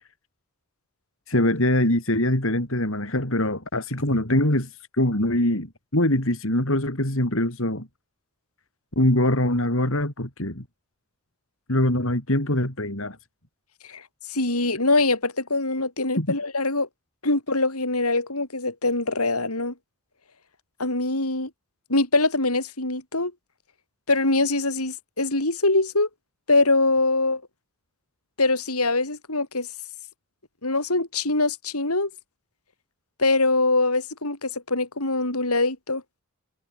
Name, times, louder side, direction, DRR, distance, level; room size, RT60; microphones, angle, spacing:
voice 1, 1.3-4.7 5.0-7.9 9.0-10.6 11.7-13.2 16.2-16.3, left 1 dB, 65° left, 4.8 m, -23 dB
voice 2, 14.3-16.9 17.2-19.7 20.8-21.5 21.9-23.3 24.1-26.1 26.5-27.4 28.4-29.7 30.6-32.1 33.2-36.0, left 2 dB, 90° left, 7.4 m, -23 dB
head